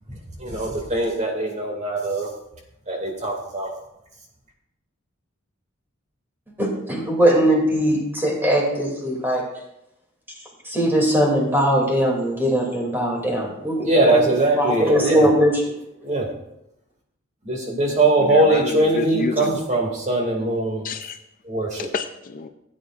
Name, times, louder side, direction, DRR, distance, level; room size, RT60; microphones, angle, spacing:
voice 1, 0.1-2.3 2.9-3.7 13.3-13.4 13.8-15.3 16.0-16.3 17.4-20.9 21.4-21.9, right 2 dB, 35° right, 0 dB, 2.2 m, -21 dB
voice 2, 6.6-9.4 10.6-14.2 14.6-15.5, equal, 10° right, -2 dB, 2.6 m, -20 dB
voice 3, 18.3-19.6 20.8-21.2 21.9-22.5, left 4 dB, 40° left, 8 dB, 0.5 m, -28 dB
16.0 x 8.5 x 2.5 m, 0.85 s
head